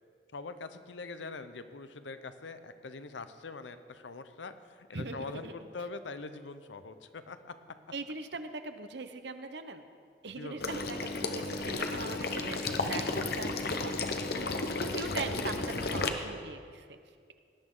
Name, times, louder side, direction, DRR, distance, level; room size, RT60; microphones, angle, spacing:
voice 1, 0.3-7.4 10.4-10.7 11.9-12.2 14.2-14.8, left 3 dB, 90° left, 10 dB, 0.7 m, -43 dB
voice 2, 4.9-5.5 7.9-9.8 10.2-13.9 14.3-14.4 14.9-17.0, right 3 dB, 70° right, 9 dB, 0.9 m, -41 dB
Water / Liquid, 10.6-16.1, left 3 dB, 60° left, 0.9 m, -33 dB
18.0 x 11.0 x 3.9 m, 2.1 s
head